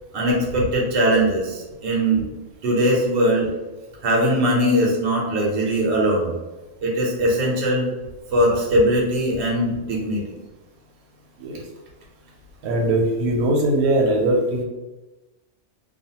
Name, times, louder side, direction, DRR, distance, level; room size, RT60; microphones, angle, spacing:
voice 1, 0.1-2.2 2.6-3.5 4.0-6.3 6.8-7.9 8.3-10.2, right 1 dB, 60° right, -2 dB, 0.9 m, -20 dB
voice 2, 12.6-14.6, right 1 dB, 85° right, 0 dB, 1.1 m, -20 dB
2.4 x 2.4 x 2.7 m, 1.1 s
omnidirectional pair, 1.5 m